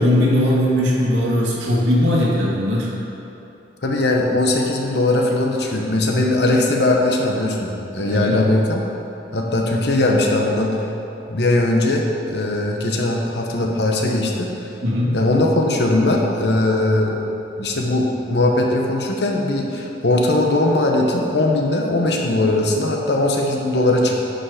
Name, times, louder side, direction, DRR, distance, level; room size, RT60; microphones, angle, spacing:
voice 1, 0.0-2.9 8.0-8.4 14.8-15.2, left 1 dB, 85° right, -5 dB, 1.8 m, -19 dB
voice 2, 3.8-8.8 9.3-10.8 11.3-14.5 15.1-17.2 17.6-24.2, left 2 dB, 65° left, 0 dB, 1.0 m, -19 dB
10.0 x 5.4 x 5.0 m, 2.9 s
head